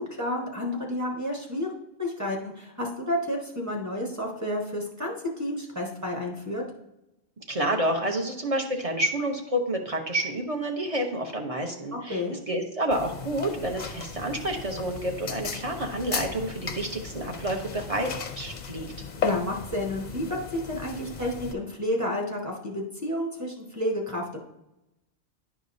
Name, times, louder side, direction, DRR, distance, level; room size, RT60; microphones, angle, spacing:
voice 1, 0.0-1.7 2.0-6.6 12.1-12.4 19.2-24.4, left 1 dB, 15° right, -1 dB, 1.2 m, -30 dB
voice 2, 7.5-18.1 18.4-18.9, right 1 dB, 35° right, 3 dB, 0.8 m, -29 dB
sound 1, 12.9-21.5, left 6 dB, 50° left, 0.6 m, -36 dB
10.5 x 4.9 x 2.6 m, 0.90 s
omnidirectional pair, 1.2 m